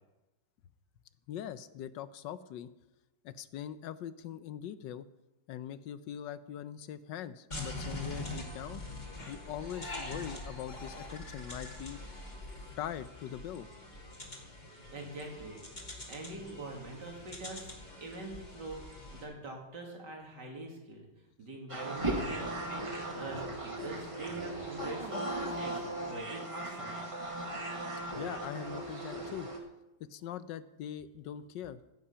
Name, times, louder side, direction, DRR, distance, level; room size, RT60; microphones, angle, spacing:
voice 1, 1.3-2.7 3.2-5.1 5.5-8.8 9.3-12.0 12.8-13.7 28.1-29.5 30.1-31.8, left 10 dB, 80° left, 14 dB, 1.3 m, -42 dB
sound 1, 7.5-19.2, left 2 dB, 25° left, 2.2 m, -44 dB
voice 2, 14.9-15.6 16.1-17.7 18.0-18.8 19.1-21.1 21.4-26.9, right 2 dB, 70° right, 0 dB, 3.2 m, -44 dB
sound 2, 21.7-29.6, right 1 dB, 20° right, 1.6 m, -37 dB
15.0 x 8.7 x 5.6 m, 1.0 s
omnidirectional pair, 1.9 m